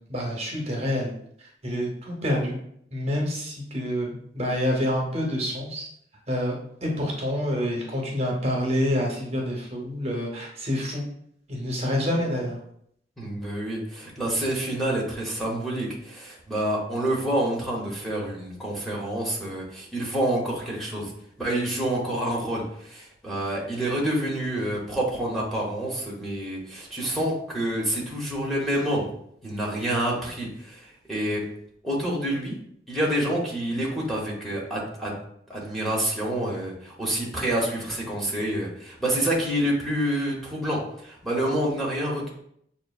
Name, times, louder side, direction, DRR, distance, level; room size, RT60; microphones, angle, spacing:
voice 1, 0.1-1.1 1.6-2.6 2.9-4.1 4.3-5.8 6.3-11.0 11.5-12.6, equal, 35° right, -1 dB, 0.7 m, -27 dB
voice 2, 13.2-21.1 21.4-29.0 29.4-31.4 31.8-32.6 32.9-35.2 35.5-42.3, right 1 dB, ahead, -4 dB, 0.8 m, -28 dB
6.5 x 2.4 x 2.3 m, 0.69 s
head